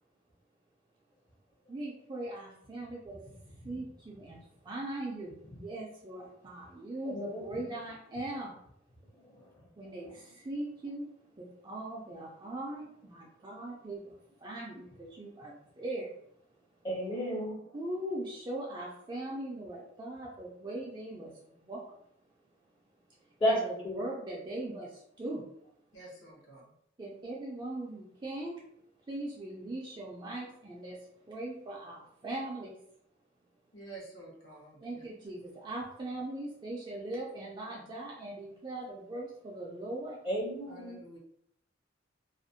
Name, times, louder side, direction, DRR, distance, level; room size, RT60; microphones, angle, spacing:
voice 1, 1.7-3.2 3.6-8.6 9.8-11.1 11.4-16.1 17.7-21.8 23.5-25.4 27.0-28.6 29.1-31.0 31.2-32.7 34.8-40.2, right 1 dB, 25° right, -3 dB, 0.3 m, -40 dB
voice 2, 7.0-7.4 9.2-9.5 16.8-17.6 23.4-23.6 23.8-24.0 40.2-41.0, equal, 25° left, -3 dB, 0.6 m, -32 dB
voice 3, 25.9-26.7 33.7-35.0 40.7-41.2, right 2 dB, 75° left, -4 dB, 0.9 m, -49 dB
2.4 x 2.1 x 2.6 m, 0.71 s
head